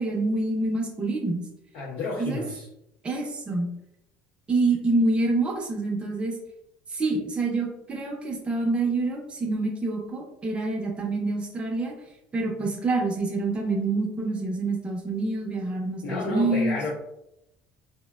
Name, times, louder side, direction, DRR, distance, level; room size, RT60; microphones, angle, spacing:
voice 1, 0.0-1.4 2.2-2.4 3.0-3.7 4.5-6.4 6.9-11.9 12.3-16.8, right 2 dB, 20° right, 0 dB, 0.5 m, -26 dB
voice 2, 1.7-2.7 16.0-16.9, left 3 dB, 65° left, -5 dB, 0.5 m, -31 dB
3.2 x 2.1 x 2.2 m, 0.84 s
cardioid pair, 130°, 5 cm